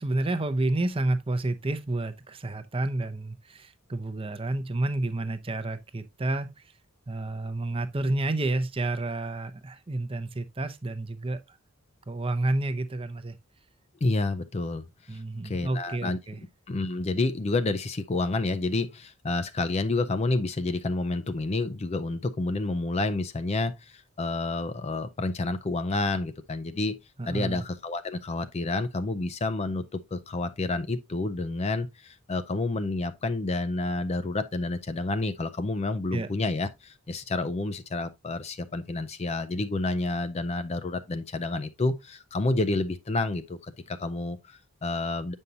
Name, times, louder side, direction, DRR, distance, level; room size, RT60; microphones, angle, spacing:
voice 1, 0.0-6.5 7.1-11.6 12.1-13.4 15.1-16.4 27.2-27.6 36.1-36.3, right 2 dB, 25° right, 0.6 m, -30 dB
voice 2, 14.0-16.2 16.7-27.0 27.3-45.3, left 2 dB, 30° left, 0.5 m, -29 dB
8.0 x 5.4 x 2.7 m
head